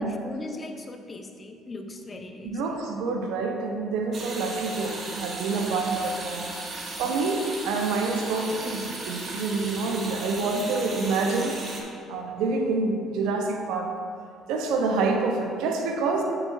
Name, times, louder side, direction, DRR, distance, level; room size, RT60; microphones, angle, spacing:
voice 1, 0.0-2.8, left 2 dB, 30° left, 5 dB, 0.8 m, -38 dB
voice 2, 2.4-6.5 7.0-11.6 12.1-13.9 14.5-16.2, right 3 dB, 70° right, 3 dB, 0.8 m, -27 dB
sound 1, 4.1-11.8, right 2 dB, 45° right, 1.4 m, -36 dB
8.9 x 7.3 x 2.6 m, 2.3 s
hypercardioid pair, 55°, 0 cm